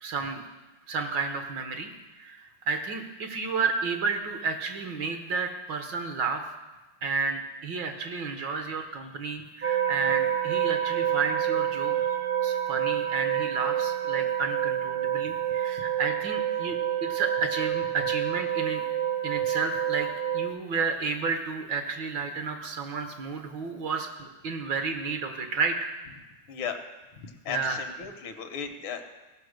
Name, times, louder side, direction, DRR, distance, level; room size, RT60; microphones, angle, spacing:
voice 1, 0.0-0.4 0.9-1.9 2.1-6.4 7.0-11.9 12.4-18.8 19.2-20.1 20.3-25.9 27.5-27.8, right 4 dB, 65° right, 5 dB, 1.7 m, -31 dB
sound 1, 9.6-20.5, right 10 dB, 35° right, 0.8 m, -28 dB
voice 2, 11.9-12.3 26.5-26.8 27.2-29.0, left 7 dB, 80° left, 7 dB, 1.7 m, -36 dB
16.5 x 5.5 x 6.4 m, 1.1 s
omnidirectional pair, 2.2 m